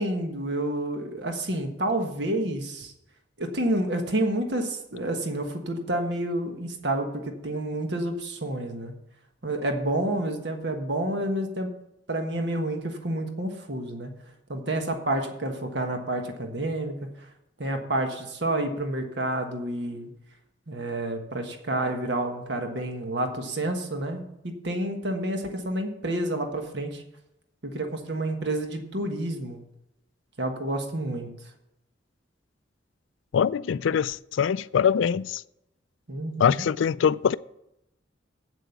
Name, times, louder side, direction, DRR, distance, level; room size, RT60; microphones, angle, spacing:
voice 1, 0.0-2.9 3.4-8.9 9.4-11.7 12.1-14.1 14.5-17.3 17.6-20.1 20.7-27.0 27.6-29.6 30.4-31.3 36.1-36.6, right 1 dB, 65° right, 1.4 m, -29 dB
voice 2, 33.3-35.4 36.4-37.4, left 7 dB, 85° left, 0.3 m, -23 dB
8.4 x 7.6 x 7.1 m
head